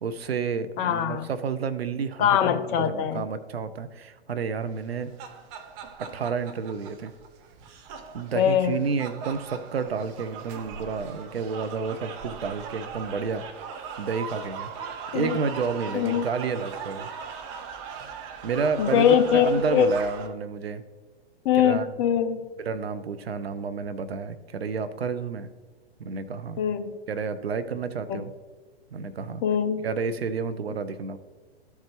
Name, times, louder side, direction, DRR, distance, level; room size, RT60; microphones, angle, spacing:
voice 1, 0.0-5.1 6.0-7.1 8.1-13.5 14.0-14.7 15.1-17.1 18.4-20.8 21.5-21.9 22.6-25.5 26.0-26.6 27.1-28.3 28.9-29.4 29.8-31.2, right 5 dB, 75° right, 11 dB, 0.7 m, -30 dB
voice 2, 0.8-1.3 2.2-3.2 8.4-8.8 15.1-15.4 15.9-16.3 18.8-19.9 21.4-22.5 26.6-27.0 28.1-28.2 29.4-29.8, left 9 dB, 25° left, 8 dB, 0.5 m, -22 dB
sound 1, 4.8-20.3, right 6 dB, 30° right, 0.7 m, -39 dB
13.0 x 4.7 x 3.0 m, 1.3 s
figure-of-eight pair, 115°, 31 cm